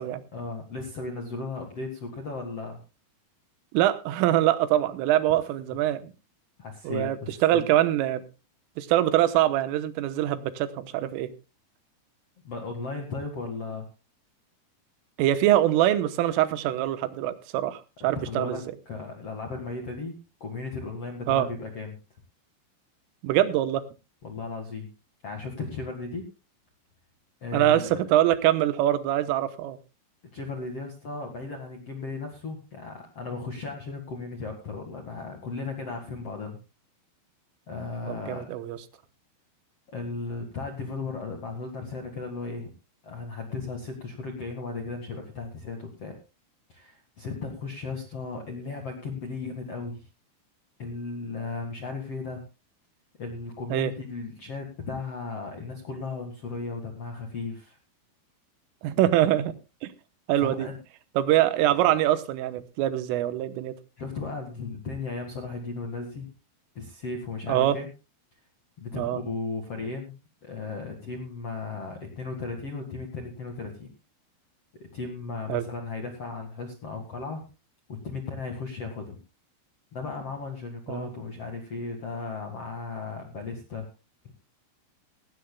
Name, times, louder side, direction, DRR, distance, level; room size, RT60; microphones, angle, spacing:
voice 1, 0.3-2.8 6.6-7.7 12.4-13.9 18.1-22.0 24.2-24.9 25.2-26.3 27.4-28.0 30.3-36.6 37.7-38.6 39.9-42.7 43.0-46.2 46.7-50.0 50.8-52.4 53.2-57.8 60.4-60.8 64.0-66.3 66.7-67.9 68.8-70.1 70.4-73.9 74.9-77.4 77.9-79.2 79.9-83.9, left 3 dB, 55° left, 2 dB, 1.7 m, -36 dB
voice 2, 3.7-6.0 6.9-8.2 8.8-11.3 15.2-18.6 21.3-21.5 23.2-23.9 27.5-29.8 38.1-38.8 53.7-53.9 58.8-59.5 59.8-59.9 60.3-60.7 61.2-63.7 67.5-67.8 69.0-69.2 75.5-75.7 80.9-81.1, right 13 dB, 90° right, 12 dB, 3.6 m, -24 dB
17.5 x 17.0 x 2.2 m, 0.29 s
omnidirectional pair, 5.6 m